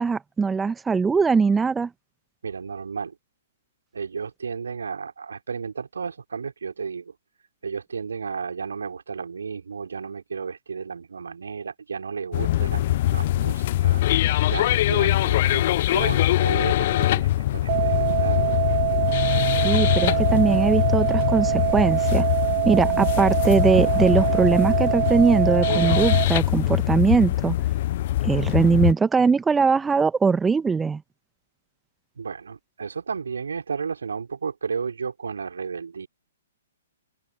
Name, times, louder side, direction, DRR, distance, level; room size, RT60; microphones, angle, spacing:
voice 1, 0.0-1.9 19.6-22.2 22.6-27.5 28.2-31.0, right 5 dB, 10° right, 1.3 m, -21 dB
voice 2, 2.4-3.2 3.9-7.1 7.6-14.0 14.5-18.5 32.2-36.1, right 5 dB, 65° right, 3.5 m, -33 dB
sound 1, 12.3-28.9, left 14 dB, 45° left, 0.4 m, -23 dB
sound 2, 17.7-26.3, right 20 dB, 40° right, 1.6 m, -24 dB
open air
figure-of-eight pair, 120°, 0 cm